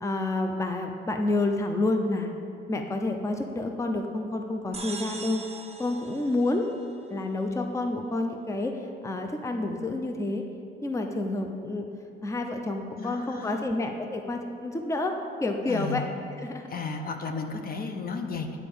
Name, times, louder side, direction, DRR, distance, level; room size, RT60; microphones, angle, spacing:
voice 1, 0.0-2.3 2.7-5.4 5.8-6.7 7.1-10.4 10.8-11.9 12.2-15.1 15.4-16.0 16.4-16.7, left 2 dB, 15° left, 4 dB, 0.6 m, -29 dB
sound 1, 4.7-7.3, right 4 dB, 30° right, 1.1 m, -41 dB
voice 2, 12.9-13.7 15.7-16.1 16.7-18.6, left 4 dB, 50° left, 5 dB, 0.8 m, -34 dB
9.1 x 4.7 x 7.0 m, 2.5 s
cardioid pair, 90°, 20 cm